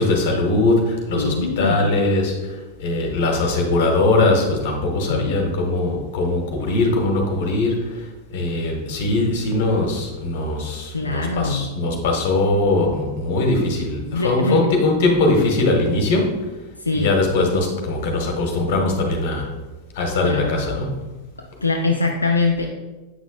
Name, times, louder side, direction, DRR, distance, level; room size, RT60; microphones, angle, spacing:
voice 1, 0.0-16.4 16.9-19.5 19.9-20.9, left 2 dB, 50° left, 2 dB, 1.3 m, -21 dB
voice 2, 1.2-1.9 5.1-5.5 10.9-11.7 14.1-14.6 16.8-17.1 20.2-20.6 21.4-22.7, left 3 dB, 80° left, 2 dB, 0.5 m, -23 dB
8.1 x 6.0 x 2.3 m, 1.2 s
figure-of-eight pair, 90°, 0 cm